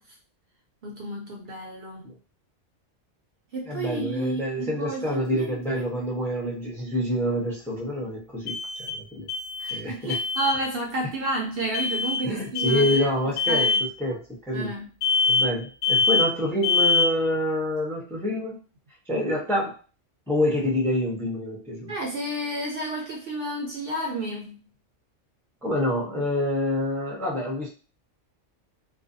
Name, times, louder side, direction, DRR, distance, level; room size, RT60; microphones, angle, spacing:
voice 1, 0.8-2.1 3.5-5.8 9.6-13.1 13.5-13.8 14.5-14.9 21.9-24.6, right 1 dB, 60° right, 0 dB, 0.7 m, -31 dB
voice 2, 3.6-9.3 9.7-10.2 12.2-13.7 14.0-14.7 15.3-18.6 19.1-19.8 20.3-21.9 25.6-27.7, left 1 dB, 5° left, -2 dB, 0.5 m, -27 dB
sound 1, 5.2-5.3 8.5-9.0 9.3-9.8 10.1-10.6 11.7-12.2 12.5-13.0 13.4-13.9 15.0-15.6 15.8-16.4 16.6-17.2, left 4 dB, 35° left, 1.0 m, -24 dB
2.5 x 2.2 x 2.5 m, 0.34 s
omnidirectional pair, 1.3 m